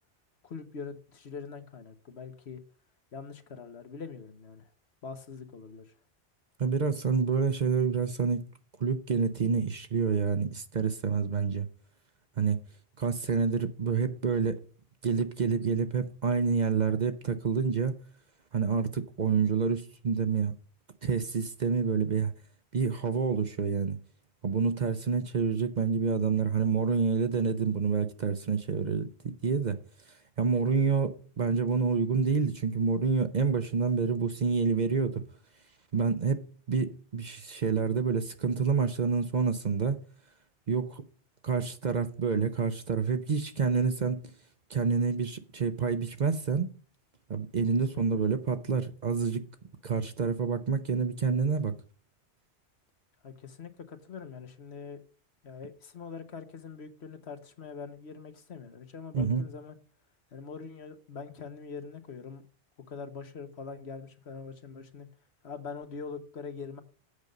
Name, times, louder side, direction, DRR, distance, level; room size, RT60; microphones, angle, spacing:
voice 1, 0.4-2.6 3.1-4.6 5.0-5.9 47.9-48.2 53.2-55.0 55.4-59.8 60.3-62.4 62.9-65.1 65.4-66.8, left 5 dB, 70° left, 1.4 m, -43 dB
voice 2, 6.6-8.5 8.8-11.7 12.4-12.6 13.0-14.6 15.0-17.9 18.5-20.5 21.0-22.3 22.7-24.0 24.4-29.8 30.4-35.2 35.9-40.0 40.7-41.0 41.4-44.2 44.7-46.7 47.3-49.5 49.8-51.7 59.1-59.4, right 5 dB, 45° right, 0.8 m, -28 dB
8.3 x 5.3 x 6.4 m
omnidirectional pair, 1.1 m